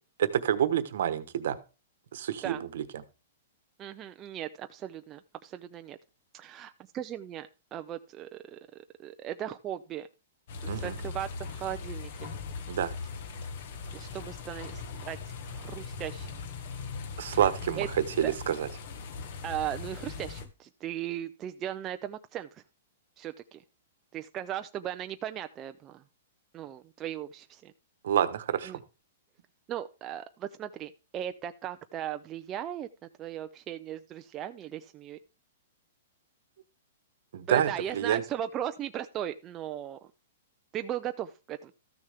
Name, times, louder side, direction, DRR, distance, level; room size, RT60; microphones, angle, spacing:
voice 1, 0.2-1.6 2.1-2.8 10.7-10.9 12.7-12.9 17.2-18.7 28.0-28.7 37.3-38.2, right 10 dB, 65° right, 13 dB, 1.1 m, -28 dB
voice 2, 3.8-6.0 6.3-8.6 9.0-10.1 10.6-12.3 13.9-15.2 15.5-16.4 17.3-17.4 17.8-17.9 18.2-18.3 19.4-22.5 23.2-23.6 24.1-26.0 26.5-27.7 28.6-28.8 29.7-32.9 33.2-35.2 37.5-40.0 40.7-41.7, right 11 dB, 20° right, 7 dB, 0.4 m, -37 dB
sound 1, 10.5-20.5, left 4 dB, 50° left, 1.3 m, -40 dB
13.5 x 6.5 x 3.4 m, 0.30 s
hypercardioid pair, 165°, 0 cm